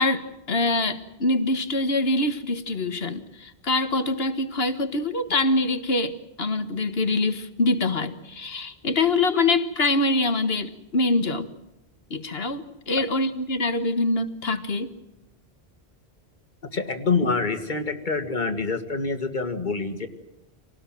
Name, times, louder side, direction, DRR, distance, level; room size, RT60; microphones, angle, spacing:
voice 1, 0.0-11.5 12.1-14.9, left 2 dB, 70° left, 11 dB, 1.8 m, -24 dB
voice 2, 16.7-20.1, left 4 dB, 45° left, 8 dB, 2.2 m, -26 dB
27.0 x 19.0 x 7.6 m, 0.94 s
omnidirectional pair, 1.1 m